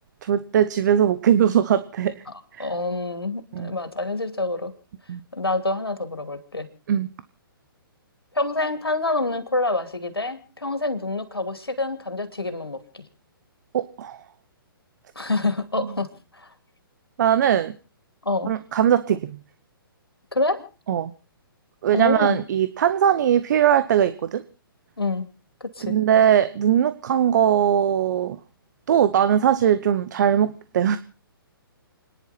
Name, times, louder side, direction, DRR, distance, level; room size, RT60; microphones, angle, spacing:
voice 1, 0.2-2.1 2.6-2.7 3.5-3.7 5.1-5.2 6.9-7.1 13.7-14.2 15.8-15.9 17.2-17.7 18.5-19.4 20.9-21.1 21.8-24.4 25.8-28.4 28.9-31.0, right 9 dB, 50° right, 13 dB, 0.9 m, -20 dB
voice 2, 2.3-4.7 5.3-6.7 8.3-13.1 15.2-16.5 18.2-18.5 20.3-20.6 21.9-22.4 25.0-25.3 25.6-26.0, left 2 dB, 90° left, 9 dB, 2.6 m, -27 dB
29.5 x 10.5 x 4.2 m, 0.34 s
figure-of-eight pair, 130°, 12 cm